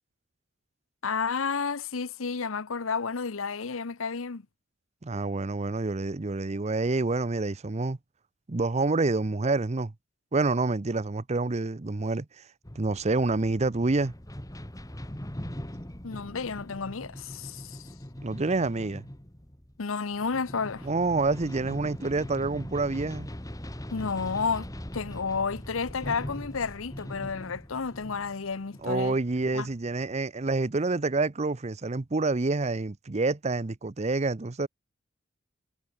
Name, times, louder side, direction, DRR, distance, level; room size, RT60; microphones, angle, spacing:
voice 1, 1.0-4.4 16.0-17.9 19.8-20.9 23.9-24.7 24.9-29.2 29.5-29.7, left 5 dB, 85° left, 0.9 m, -31 dB
voice 2, 5.0-8.0 8.5-9.9 10.3-12.4 12.7-14.1 18.2-19.0 20.8-23.3 28.8-34.7, right 3 dB, 35° right, 0.7 m, -27 dB
sound 1, 12.6-30.2, equal, 15° left, 1.9 m, -41 dB
head